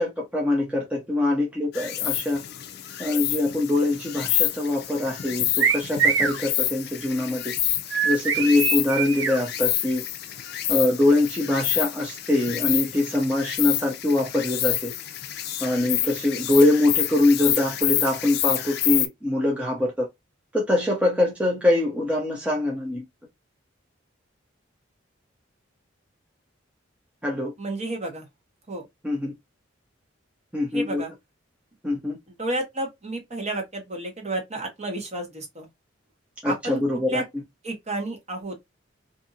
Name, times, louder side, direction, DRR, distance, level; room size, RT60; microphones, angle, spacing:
voice 1, 0.0-2.4 3.0-7.5 8.0-10.0 10.7-14.9 15.6-20.1 20.5-23.0 27.2-27.5 29.0-29.3 30.5-31.0 31.8-32.2 36.4-37.2, left 2 dB, 5° right, 0.6 m, -23 dB
Insect, 1.7-19.1, left 12 dB, 55° left, 0.4 m, -28 dB
sound 1, 5.6-6.4 7.9-9.4, right 6 dB, 70° right, 0.7 m, -23 dB
voice 2, 27.6-28.2 28.7-28.8 30.7-31.1 32.4-35.7 36.4-36.8 37.1-37.2 37.6-38.6, right 2 dB, 35° right, 1.0 m, -31 dB
2.6 x 2.6 x 2.6 m
head